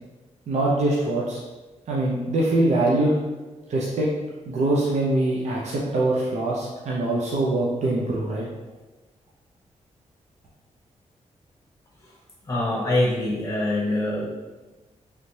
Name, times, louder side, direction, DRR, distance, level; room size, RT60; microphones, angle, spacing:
voice 1, 0.5-1.4 1.9-3.1 3.7-4.1 4.5-8.5, right 2 dB, 65° right, -5 dB, 0.6 m, -23 dB
voice 2, 12.4-14.3, left 1 dB, 30° left, -4 dB, 1.0 m, -24 dB
3.2 x 2.7 x 3.1 m, 1.2 s
cardioid pair, 90°, 12 cm